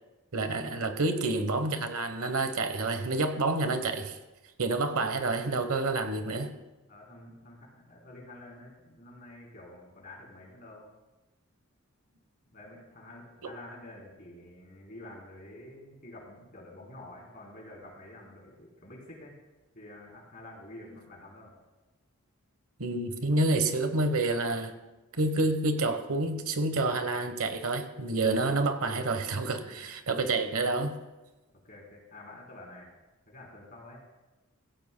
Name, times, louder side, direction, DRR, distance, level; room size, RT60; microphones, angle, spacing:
voice 1, 0.3-4.2 4.6-6.5 22.8-24.7 25.1-30.9, right 2 dB, 85° right, 9 dB, 1.1 m, -28 dB
voice 2, 6.9-10.9 12.5-19.3 19.7-21.5 29.5-29.8 31.6-32.9 33.3-34.0, left 1 dB, 40° left, -3 dB, 3.5 m, -48 dB
16.0 x 16.0 x 2.2 m, 1.1 s
head